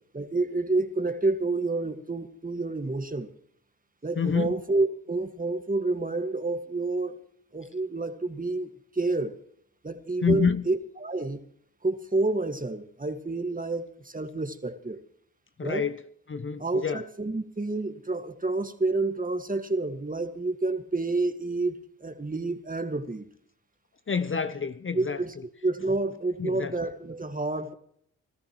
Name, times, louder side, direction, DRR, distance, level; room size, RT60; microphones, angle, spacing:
voice 1, 0.1-3.3 4.0-7.2 7.5-9.4 9.8-11.4 11.8-15.0 15.6-15.9 16.6-23.2 24.9-25.4 25.6-27.7, right 2 dB, 25° right, 1.9 m, -29 dB
voice 2, 4.2-4.5 10.2-10.6 15.6-16.0 16.3-17.0 24.1-25.2 26.4-26.7, left 6 dB, 35° left, 0.8 m, -27 dB
25.0 x 14.0 x 3.1 m
cardioid pair, 55°, 35 cm